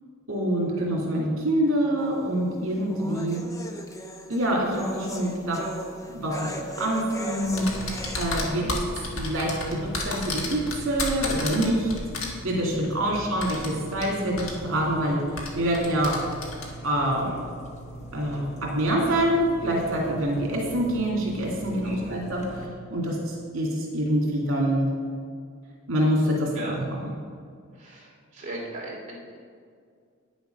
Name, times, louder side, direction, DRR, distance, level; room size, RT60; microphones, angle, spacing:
voice 1, 0.3-3.4 4.3-5.7 6.1-7.6 8.1-8.6 9.1-11.9 12.4-15.2 15.5-16.1 16.8-17.3 18.1-24.9 25.9-27.0, right 1 dB, 70° right, -2 dB, 2.3 m, -26 dB
sound 1, 2.0-8.4, equal, 15° left, 0.7 m, -38 dB
sound 2, 7.4-22.7, right 1 dB, 35° left, 1.3 m, -42 dB
sound 3, 7.6-12.3 13.4-14.0 14.4-14.5 15.4-16.7, left 3 dB, 70° left, 1.5 m, -31 dB
voice 2, 8.5-8.8 13.0-13.2 18.3-18.4 21.8-22.2 26.5-26.7 27.7-29.4, right 2 dB, 35° right, -5 dB, 2.7 m, -38 dB
9.4 x 7.1 x 5.1 m, 2.2 s
head